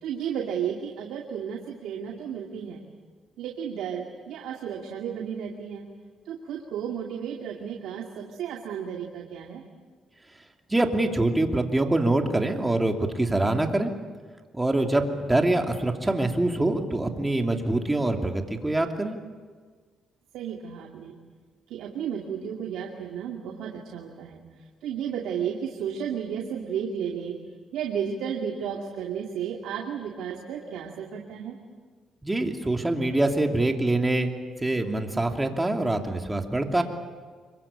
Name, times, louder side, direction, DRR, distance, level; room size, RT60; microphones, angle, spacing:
voice 1, 0.0-2.8 3.4-5.8 6.2-9.6 20.3-21.2 21.7-24.4 24.8-27.4 27.7-31.6, right 8 dB, 85° right, 1 dB, 2.4 m, -33 dB
voice 2, 10.7-13.9 14.5-19.2 32.2-34.3 34.6-36.8, right 2 dB, 15° right, 4 dB, 2.8 m, -24 dB
26.0 x 23.0 x 8.7 m, 1.5 s
cardioid pair, 90°, 0 cm